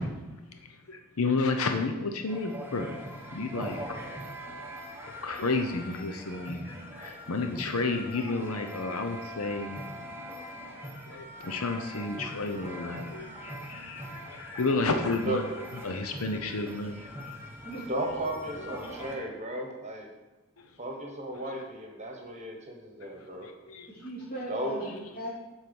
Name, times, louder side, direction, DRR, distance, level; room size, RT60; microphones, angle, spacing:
voice 1, 0.9-2.9 3.3-4.2 5.0-10.0 11.1-15.5 15.8-17.4 23.4-23.9, left 3 dB, 80° left, 5 dB, 0.8 m, -31 dB
sound 1, 2.3-19.2, equal, 10° right, 1.0 m, -43 dB
voice 2, 17.9-20.1 20.8-23.5 24.5-24.8, right 1 dB, 30° right, 2 dB, 1.3 m, -34 dB
voice 3, 18.7-19.2 23.9-25.3, right 1 dB, 40° left, -5 dB, 2.9 m, -39 dB
7.7 x 4.5 x 7.1 m, 1.1 s
head